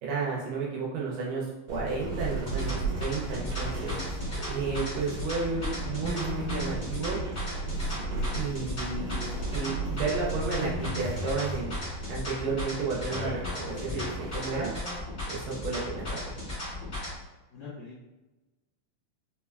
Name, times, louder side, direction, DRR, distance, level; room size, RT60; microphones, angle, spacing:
voice 1, 0.0-4.0 4.5-7.2 8.3-9.1 9.5-11.8 12.1-14.7 15.3-16.3, right 4 dB, 75° right, -4 dB, 2.0 m, -32 dB
sound 1, 1.7-15.0, right 2 dB, 60° right, 1.6 m, -35 dB
sound 2, 2.4-17.2, left 1 dB, 65° left, 0.8 m, -36 dB
voice 2, 17.5-18.0, left 4 dB, 80° left, -8 dB, 1.5 m, -45 dB
5.3 x 2.1 x 2.3 m, 1.1 s
omnidirectional pair, 4.0 m